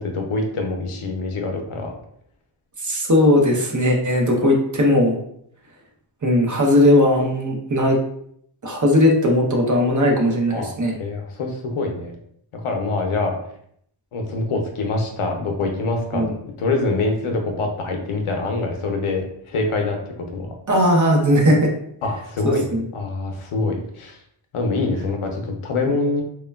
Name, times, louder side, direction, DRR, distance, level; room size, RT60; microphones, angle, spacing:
voice 1, 0.0-1.9 10.5-12.1 12.5-13.3 14.1-20.0 20.3-20.5 22.0-24.2 24.5-26.2, left 3 dB, 80° left, 3 dB, 0.7 m, -25 dB
voice 2, 2.8-5.2 6.2-8.0 8.6-11.0 16.1-16.3 20.7-21.7 22.4-22.8, left 1 dB, 40° right, 0 dB, 0.6 m, -18 dB
3.1 x 2.2 x 2.2 m, 0.69 s
wide cardioid pair, 85°, 50 cm